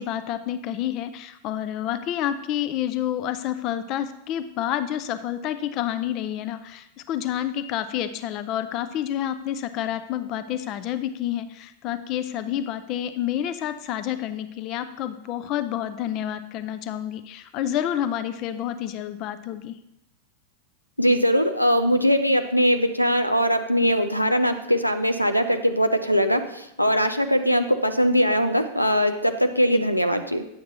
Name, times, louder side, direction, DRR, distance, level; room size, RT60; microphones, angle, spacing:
voice 1, 0.0-19.7 29.7-29.8, left 11 dB, 40° left, 11 dB, 0.5 m, -29 dB
voice 2, 21.0-30.5, equal, 90° left, 8 dB, 0.5 m, -21 dB
9.4 x 7.2 x 2.9 m, 0.83 s
figure-of-eight pair, 90°, 0 cm